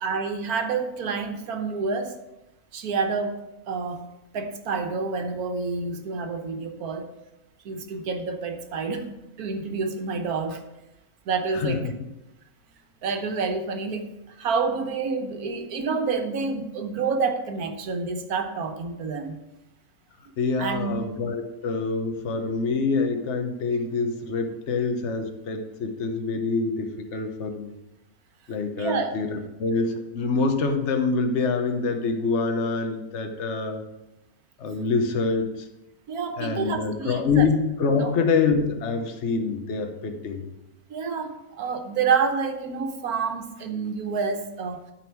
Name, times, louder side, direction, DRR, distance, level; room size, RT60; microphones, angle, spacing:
voice 1, 0.0-2.2 2.7-4.1 4.3-7.1 7.6-9.1 9.4-10.6 11.2-11.8 13.0-19.4 20.6-21.0 28.8-29.1 36.1-37.5 38.0-38.2 40.9-44.9, right 5 dB, 80° right, 6 dB, 1.5 m, -28 dB
voice 2, 11.5-11.9 20.4-27.7 28.5-33.8 34.6-35.7 36.4-37.5 37.8-40.5, left 4 dB, 55° left, 5 dB, 1.2 m, -26 dB
12.5 x 4.5 x 4.6 m, 0.92 s
omnidirectional pair, 1.6 m